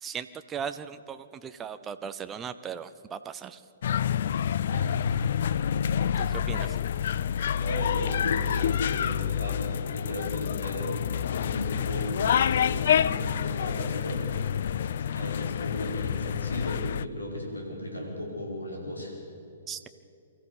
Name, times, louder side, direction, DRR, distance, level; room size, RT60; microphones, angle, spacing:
voice 1, 0.0-3.6 6.2-6.8 19.7-19.9, right 7 dB, 15° right, 10 dB, 0.6 m, -38 dB
sound 1, 3.8-17.0, left 9 dB, 55° left, 0.5 m, -28 dB
voice 2, 4.7-5.5 6.2-6.6 7.5-10.9 11.3-14.3 15.1-19.1, equal, 85° left, 0 dB, 5.5 m, -36 dB
24.0 x 14.5 x 8.3 m, 2.8 s
figure-of-eight pair, 120°, 0 cm